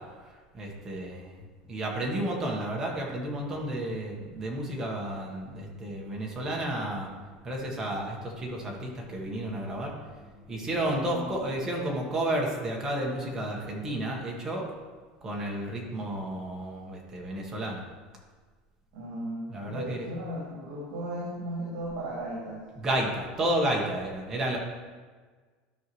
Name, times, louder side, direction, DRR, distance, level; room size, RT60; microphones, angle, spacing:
voice 1, 0.2-1.4 1.7-7.1 7.4-9.9 10.5-14.6 15.2-17.8 19.5-20.2 22.8-24.6, right 1 dB, 15° right, -1 dB, 1.3 m, -32 dB
sound 1, 2.4-11.6, left 2 dB, 10° left, 2.0 m, -55 dB
voice 2, 11.1-11.5 18.9-22.7, right 1 dB, 70° right, -5 dB, 2.4 m, -36 dB
12.5 x 5.6 x 3.1 m, 1.4 s
cardioid pair, 175°, 3 cm